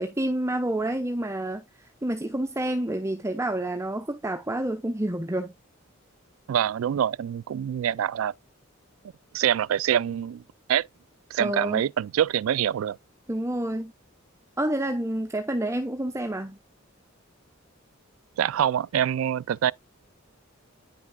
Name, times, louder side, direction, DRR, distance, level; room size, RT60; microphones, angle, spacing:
voice 1, 0.0-1.6 2.0-5.5 11.4-11.8 13.3-13.9 14.6-16.6, right 1 dB, 15° right, 0.7 m, -28 dB
voice 2, 6.5-8.3 9.3-10.4 10.7-10.9 11.3-13.0 18.4-19.7, right 9 dB, 80° right, 0.3 m, -25 dB
9.6 x 5.9 x 2.2 m
head